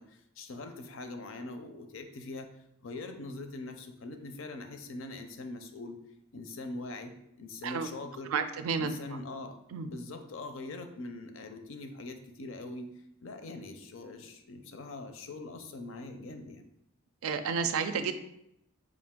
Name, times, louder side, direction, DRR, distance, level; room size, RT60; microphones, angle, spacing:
voice 1, 0.0-2.5 2.8-6.0 6.3-7.1 7.4-8.3 8.8-12.9 13.2-16.6, left 2 dB, 65° left, 7 dB, 0.5 m, -42 dB
voice 2, 8.3-8.9 9.7-9.9 17.2-18.1, right 6 dB, 80° right, 9 dB, 0.4 m, -31 dB
5.0 x 2.5 x 3.6 m, 0.80 s
head